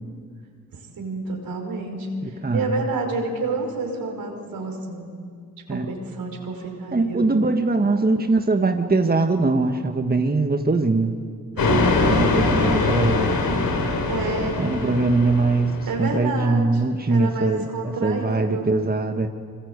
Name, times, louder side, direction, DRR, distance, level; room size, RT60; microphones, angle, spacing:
voice 1, 1.0-5.1 5.7-7.2 11.5-12.3 14.0-14.6 15.9-16.8 17.1-18.7, right 3 dB, 75° right, 3 dB, 5.3 m, -29 dB
voice 2, 2.2-2.8 5.7-5.9 6.9-11.2 12.0-13.3 14.6-19.3, right 3 dB, 25° right, 5 dB, 1.7 m, -22 dB
sound 1, 11.6-16.1, left 3 dB, 75° left, 4.0 m, -22 dB
26.0 x 25.0 x 8.2 m, 2.2 s
supercardioid pair, 50°, 35 cm